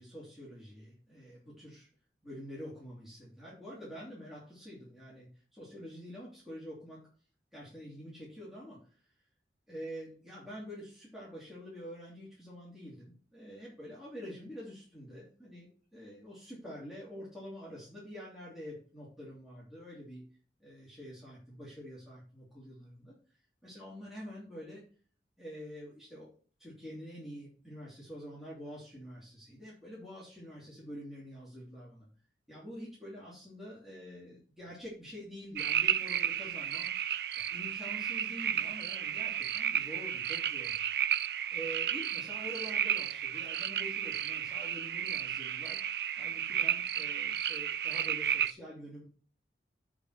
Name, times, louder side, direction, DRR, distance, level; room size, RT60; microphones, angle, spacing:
voice 1, 0.0-1.9 2.2-7.0 7.5-9.1 9.7-20.3 20.6-23.1 23.6-24.8 25.4-26.3 26.6-32.1 32.5-36.9 37.4-40.8 41.5-45.8 46.2-49.1, equal, ahead, -8 dB, 2.9 m, -47 dB
sound 1, 35.6-48.5, right 9 dB, 65° right, 0.4 m, -33 dB
8.1 x 4.9 x 5.9 m, 0.42 s
head